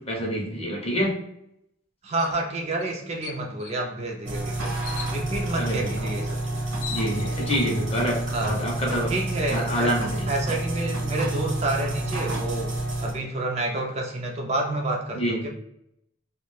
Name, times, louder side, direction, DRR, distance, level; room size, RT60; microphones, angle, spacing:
voice 1, 0.1-1.1 5.6-6.1 6.9-9.1 9.5-10.3 15.2-15.4, equal, 30° left, -1 dB, 0.5 m, -27 dB
voice 2, 2.0-4.8 5.1-6.6 7.5-7.6 8.3-8.6 9.1-9.9 10.3-12.7 13.0-15.5, right 2 dB, 35° right, 1 dB, 0.3 m, -29 dB
sound 1, 2.2-2.4 2.8-2.9 3.2-3.8 4.8-5.1 6.3-6.4 6.6-7.5, left 8 dB, 90° left, 0.3 m, -38 dB
sound 2, 4.2-13.1, right 2 dB, 65° right, 0.9 m, -29 dB
2.3 x 2.1 x 3.0 m, 0.80 s
head